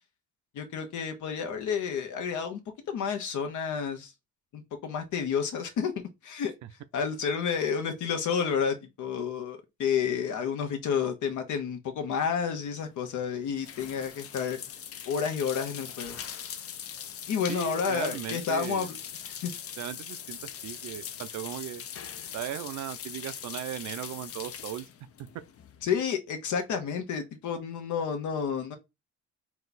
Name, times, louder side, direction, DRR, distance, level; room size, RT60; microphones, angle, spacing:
voice 1, 0.5-2.6 2.9-4.1 4.5-6.5 6.9-14.6 15.1-16.2 17.3-18.9 19.4-19.5 25.8-28.8, left 7 dB, 80° left, 1.1 m, -30 dB
sound 1, 12.8-26.0, left 8 dB, 50° left, 0.6 m, -41 dB
voice 2, 17.5-18.9 19.8-21.9 22.3-24.9, right 12 dB, 70° right, 0.5 m, -37 dB
4.1 x 2.4 x 4.0 m
cardioid pair, 90°, 30 cm